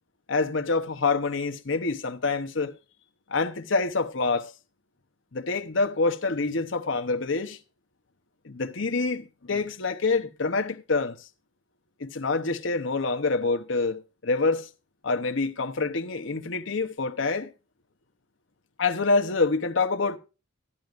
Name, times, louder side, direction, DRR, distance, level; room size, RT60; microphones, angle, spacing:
voice 1, 0.3-2.7 3.3-4.5 5.3-7.6 8.4-11.3 12.0-14.7 15.0-17.5 18.8-20.2, left 3 dB, 65° left, 0.9 m, -26 dB
14.5 x 10.5 x 2.5 m
head